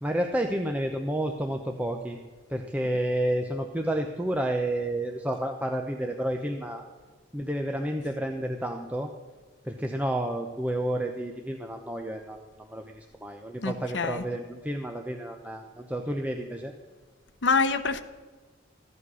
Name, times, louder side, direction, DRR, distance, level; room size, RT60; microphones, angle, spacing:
voice 1, 0.0-2.2 2.5-6.9 7.3-9.1 9.6-16.7, right 1 dB, 10° right, 0.8 m, -30 dB
voice 2, 13.6-14.2 17.4-18.0, left 4 dB, 75° left, 1.0 m, -25 dB
15.5 x 11.0 x 6.3 m
head